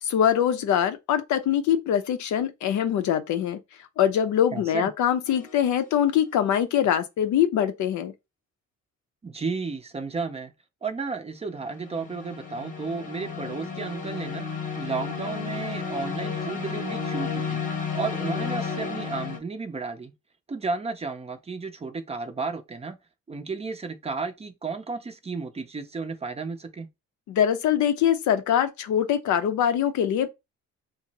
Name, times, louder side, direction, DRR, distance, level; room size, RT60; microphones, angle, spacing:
voice 1, 0.0-3.6 4.0-8.1 27.3-30.3, left 9 dB, 70° left, 0.5 m, -23 dB
voice 2, 4.5-4.9 9.2-10.5 10.8-14.5 14.8-17.6 17.9-20.1 20.5-23.0 23.3-26.9, right 4 dB, 20° right, 0.5 m, -33 dB
sound 1, 5.3-5.6 11.5-19.4, left 5 dB, 25° left, 0.8 m, -32 dB
2.6 x 2.0 x 3.9 m
cardioid pair, 100°, 31 cm